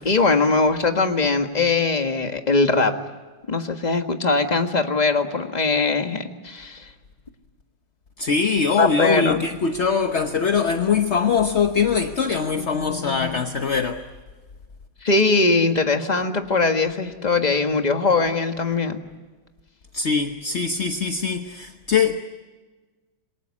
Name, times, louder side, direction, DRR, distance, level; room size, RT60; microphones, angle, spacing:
voice 1, 0.0-3.0 3.5-6.9 8.8-9.4 12.6-13.4 15.0-19.0, left 3 dB, 20° left, 1.5 m, -21 dB
voice 2, 8.2-14.0 19.9-22.2, left 5 dB, 45° left, 1.0 m, -22 dB
27.0 x 22.5 x 9.7 m
omnidirectional pair, 2.2 m